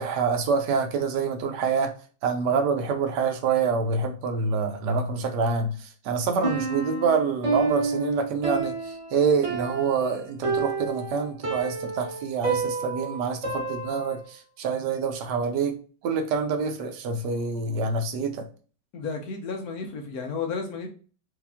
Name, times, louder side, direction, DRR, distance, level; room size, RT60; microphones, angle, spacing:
voice 1, 0.0-1.9 2.2-15.8 16.0-18.5, right 5 dB, 70° right, 6 dB, 1.2 m, -26 dB
Piano, 6.4-14.3, right 4 dB, 25° right, 0.7 m, -30 dB
voice 2, 18.9-20.9, left 5 dB, 60° left, 3 dB, 1.1 m, -32 dB
4.9 x 2.8 x 3.4 m, 0.39 s
omnidirectional pair, 2.0 m